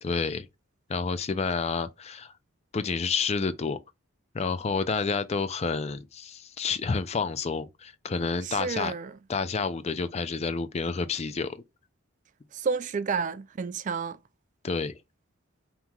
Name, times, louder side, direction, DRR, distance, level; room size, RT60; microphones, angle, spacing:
voice 1, 0.0-0.5 0.9-2.3 2.7-3.8 4.3-8.9 9.3-11.6 14.6-14.9, left 4 dB, 30° left, 0.4 m, -29 dB
voice 2, 8.4-9.2 12.5-14.2, right 5 dB, 35° right, 0.3 m, -30 dB
5.4 x 3.0 x 2.3 m
head